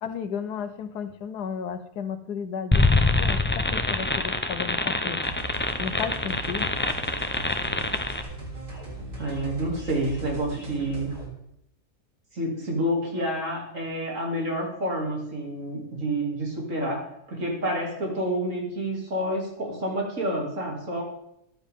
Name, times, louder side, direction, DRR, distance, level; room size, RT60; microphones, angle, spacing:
voice 1, 0.0-2.8 3.2-5.2 5.8-6.7, left 7 dB, 85° left, 11 dB, 1.4 m, -33 dB
sound 1, 2.7-8.2, left 2 dB, 15° left, 0.3 m, -25 dB
sound 2, 5.2-11.2, right 2 dB, 80° right, 4.6 m, -38 dB
voice 2, 9.2-11.1 12.3-21.0, right 1 dB, 55° right, -1 dB, 3.3 m, -29 dB
14.5 x 11.0 x 3.7 m, 0.78 s
omnidirectional pair, 1.7 m